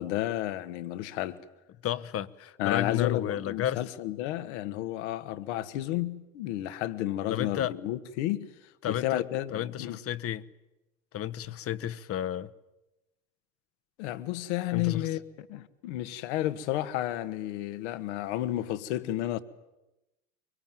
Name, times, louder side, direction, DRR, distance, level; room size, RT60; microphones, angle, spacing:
voice 1, 0.0-1.4 2.6-8.5 8.9-10.0 14.0-19.4, left 14 dB, 65° left, 1.7 m, -32 dB
voice 2, 1.8-3.8 7.3-7.8 8.8-9.2 9.5-10.5 11.1-12.5 14.7-15.1, left 11 dB, 40° left, 1.2 m, -32 dB
24.5 x 24.0 x 9.2 m
hypercardioid pair, 75°, 37 cm